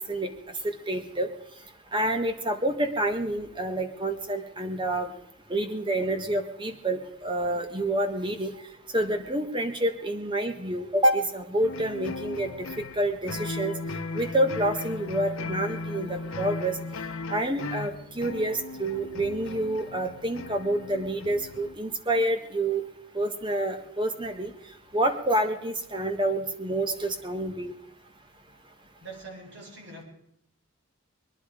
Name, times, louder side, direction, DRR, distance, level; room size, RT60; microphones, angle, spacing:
voice 1, 0.6-1.3 1.9-5.1 5.5-8.5 8.9-13.8 14.1-16.8 17.3-22.8 23.1-24.5 24.9-27.7, right 1 dB, 25° right, 6 dB, 1.4 m, -28 dB
sound 1, 11.6-21.7, left 3 dB, 85° left, 0.9 m, -37 dB
voice 2, 29.0-30.0, right 3 dB, 60° right, 0 dB, 4.9 m, -43 dB
22.5 x 11.0 x 5.0 m, 0.76 s
head